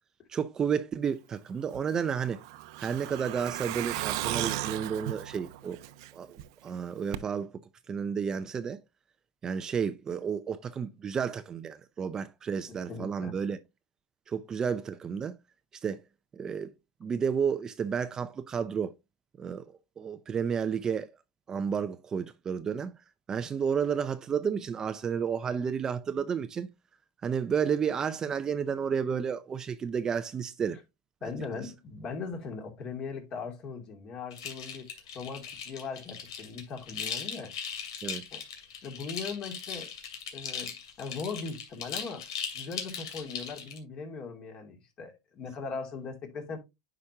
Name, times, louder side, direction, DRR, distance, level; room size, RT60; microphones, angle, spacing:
voice 1, 0.3-2.4 2.8-5.8 6.1-7.5 7.9-8.8 9.4-13.6 14.3-15.4 15.8-16.0 16.3-16.7 17.0-18.9 19.4-21.1 21.5-23.0 23.3-26.7 27.2-30.8 31.6-31.7 38.0-38.3, right 7 dB, 25° right, 0.6 m, -31 dB
Truck, 1.7-6.4 6.7-6.8 7.1-7.2, right 15 dB, 65° right, 0.7 m, -35 dB
voice 2, 12.7-13.4 31.2-37.5 38.3-38.4 38.8-39.9 40.3-42.3 42.5-46.6, left 4 dB, 35° left, 2.6 m, -39 dB
sound 1, 34.3-43.8, left 7 dB, 80° left, 2.5 m, -39 dB
9.7 x 5.2 x 2.8 m
supercardioid pair, 120°, 3 cm